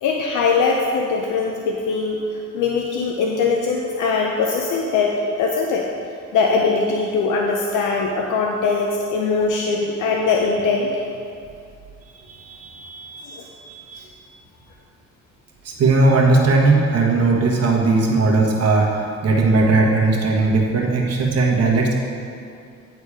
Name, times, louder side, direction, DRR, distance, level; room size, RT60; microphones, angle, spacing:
voice 1, 0.0-2.2 2.5-5.9 6.3-10.9, left 4 dB, 80° left, 0 dB, 0.7 m, -21 dB
voice 2, 12.3-13.4 13.6-14.1 15.6-22.0, right 3 dB, 55° right, -1 dB, 1.4 m, -18 dB
9.7 x 4.2 x 4.9 m, 2.4 s
cardioid pair, 90°, 30 cm